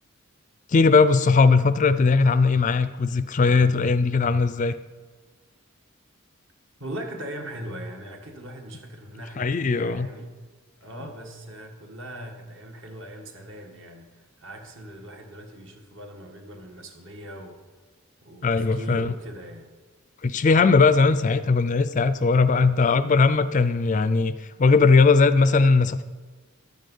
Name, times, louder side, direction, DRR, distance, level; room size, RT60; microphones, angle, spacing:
voice 1, 0.7-4.7 9.4-10.1 18.4-19.1 20.2-26.0, left 4 dB, 35° left, 13 dB, 0.4 m, -19 dB
voice 2, 6.8-10.4 10.8-17.5 18.2-19.7, right 1 dB, 60° right, 3 dB, 1.6 m, -39 dB
12.0 x 9.1 x 5.5 m, 1.3 s
head